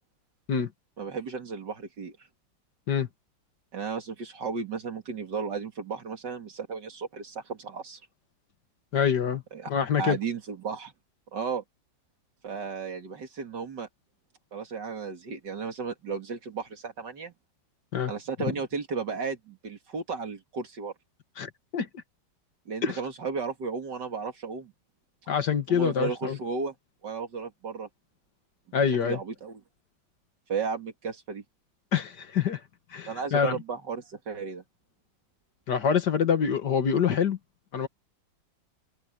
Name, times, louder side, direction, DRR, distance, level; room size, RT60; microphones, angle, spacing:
voice 1, 1.0-2.1 3.7-8.0 9.5-9.7 10.0-10.9 11.3-11.6 12.4-13.9 14.5-17.3 18.1-20.9 22.7-24.7 25.7-26.7 27.0-27.9 29.0-29.6 30.5-31.4 33.1-34.6, right 5 dB, 60° right, 2.9 m, -34 dB
voice 2, 8.9-9.4 9.7-10.2 17.9-18.1 21.4-21.9 22.8-23.0 25.3-26.4 28.7-29.2 31.9-32.6 32.9-33.6 35.7-37.4 37.7-37.9, left 7 dB, 60° left, 2.0 m, -25 dB
omnidirectional pair, 2.1 m